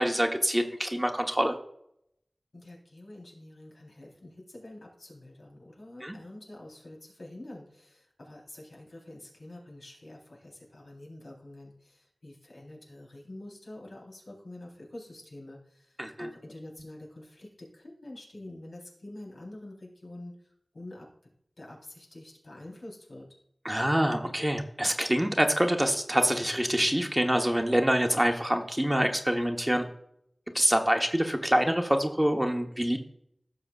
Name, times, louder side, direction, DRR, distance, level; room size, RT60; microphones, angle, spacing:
voice 1, 0.0-1.5 6.0-6.1 16.0-16.3 23.6-29.8 30.5-33.0, equal, 10° right, 4 dB, 1.1 m, -26 dB
voice 2, 2.5-21.3 21.6-23.3, left 1 dB, 80° left, -2 dB, 3.8 m, -47 dB
16.5 x 6.9 x 2.5 m, 0.73 s
wide cardioid pair, 70°, 0 cm